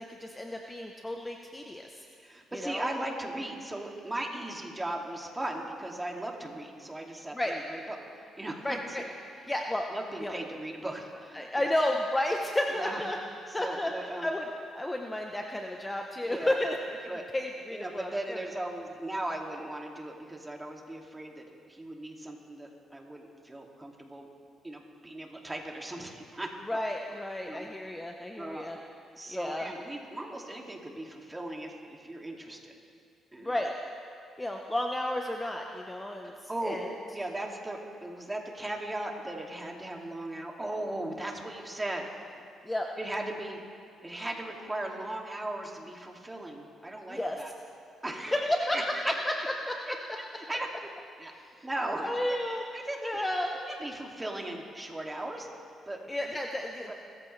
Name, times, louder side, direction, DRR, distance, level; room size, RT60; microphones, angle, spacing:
voice 1, 0.0-1.9 2.6-2.9 7.3-7.6 8.6-9.0 9.5-9.8 10.2-10.3 11.3-13.2 13.5-13.9 14.2-14.4 14.7-17.0 17.3-18.4 26.7-28.8 29.3-29.7 33.4-33.7 34.4-36.3 36.6-36.9 42.6-42.9 47.1-47.4 48.3-49.3 49.7-49.8 52.0-52.6 53.0-53.5 56.1-56.9, left 1 dB, 15° left, 2 dB, 0.9 m, -32 dB
voice 2, 2.2-9.0 9.9-11.5 12.7-13.0 13.5-14.3 16.2-16.6 17.1-17.2 17.7-24.3 24.6-26.8 27.5-27.7 28.4-28.7 29.1-32.7 33.3-33.6 36.2-36.8 37.1-42.4 43.0-43.6 44.0-47.5 48.0-49.1 49.9-50.7 51.2-51.3 51.6-52.4 52.7-53.2 53.7-55.5 55.9-56.0 56.9-57.0, right 1 dB, 15° right, 0 dB, 2.4 m, -38 dB
30.0 x 14.5 x 3.3 m, 2.3 s
cardioid pair, 90°, 0 cm